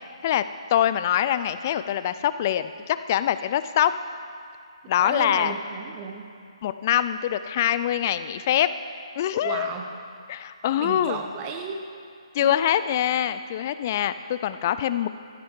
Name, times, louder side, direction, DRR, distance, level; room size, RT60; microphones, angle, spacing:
voice 1, 0.7-3.9 4.9-5.5 6.6-8.7 9.2-9.7 10.3-11.2 12.3-15.1, left 11 dB, 30° left, 13 dB, 0.3 m, -24 dB
voice 2, 5.0-6.3 9.4-10.0 10.8-11.8 12.4-12.8, right 5 dB, 20° right, 3 dB, 0.7 m, -34 dB
15.5 x 12.0 x 3.2 m, 2.3 s
figure-of-eight pair, 135°, 3 cm